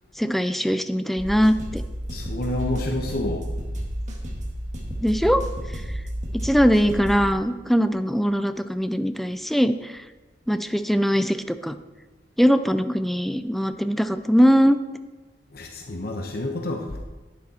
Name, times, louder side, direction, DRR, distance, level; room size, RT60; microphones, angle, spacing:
voice 1, 0.2-1.8 5.0-5.4 6.4-10.0 10.5-11.8 12.4-14.8, equal, ahead, 10 dB, 0.4 m, -21 dB
sound 1, 1.2-7.2, equal, 45° right, 1.8 m, -31 dB
voice 2, 2.1-3.5 15.5-17.0, left 1 dB, 60° left, 2 dB, 1.0 m, -29 dB
10.5 x 10.0 x 4.2 m, 1.2 s
head